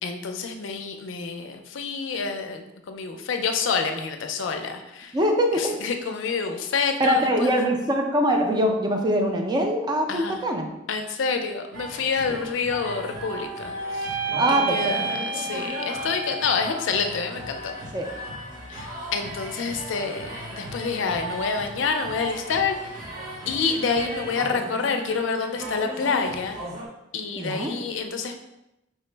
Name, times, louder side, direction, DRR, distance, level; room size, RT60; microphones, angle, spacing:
voice 1, 0.0-5.2 5.5-7.5 10.1-10.4 10.9-14.2 14.5-17.7 18.7-23.1 23.5-26.6 27.1-28.4, left 5 dB, 75° left, 6 dB, 0.4 m, -28 dB
voice 2, 5.1-5.8 7.0-10.7 12.3-12.4 14.4-15.0 17.9-18.1 27.4-27.7, equal, 20° right, 2 dB, 0.4 m, -23 dB
sound 1, 11.7-26.9, right 1 dB, 50° right, 1.0 m, -37 dB
sound 2, 12.8-17.1, right 4 dB, 65° right, 0.6 m, -31 dB
4.5 x 2.0 x 3.2 m, 0.89 s
head